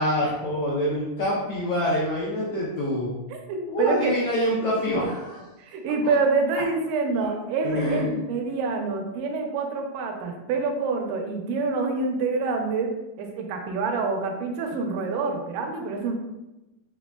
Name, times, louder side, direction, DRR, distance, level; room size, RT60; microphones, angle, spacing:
voice 1, 0.0-3.1 3.7-5.5 6.0-6.1 7.6-8.2, equal, 80° left, -6 dB, 1.4 m, -26 dB
voice 2, 3.3-4.2 5.7-12.9 13.2-16.2, right 4 dB, 90° right, 3 dB, 2.2 m, -26 dB
6.7 x 2.3 x 2.3 m, 1.0 s
omnidirectional pair, 3.6 m